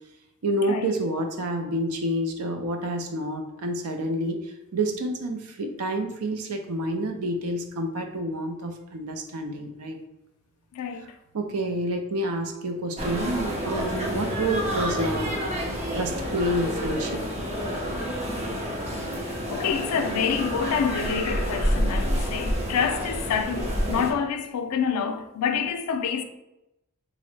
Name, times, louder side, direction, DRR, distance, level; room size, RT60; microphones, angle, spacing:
voice 1, 0.4-4.4 4.7-10.0 11.3-15.3 15.9-17.2, right 1 dB, 75° right, 0.5 m, -28 dB
voice 2, 10.7-11.2 19.5-26.2, left 6 dB, 75° left, 0.3 m, -27 dB
sound 1, 13.0-24.1, equal, 30° right, 0.6 m, -29 dB
3.7 x 2.0 x 3.2 m
head